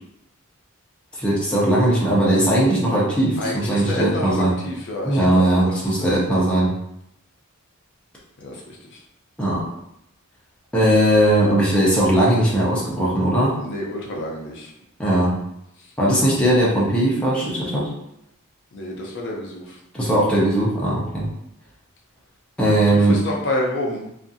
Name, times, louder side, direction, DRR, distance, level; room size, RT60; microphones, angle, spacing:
voice 1, 1.1-4.6 5.1-6.7 9.4-9.6 10.7-13.5 15.0-15.3 16.0-17.9 19.9-21.3 22.6-23.2, right 1 dB, 5° left, -7 dB, 0.6 m, -19 dB
voice 2, 3.4-6.4 8.4-9.0 13.6-14.7 18.7-19.8 22.6-24.1, left 1 dB, 55° left, -2 dB, 0.5 m, -29 dB
2.5 x 2.4 x 2.6 m, 0.79 s
head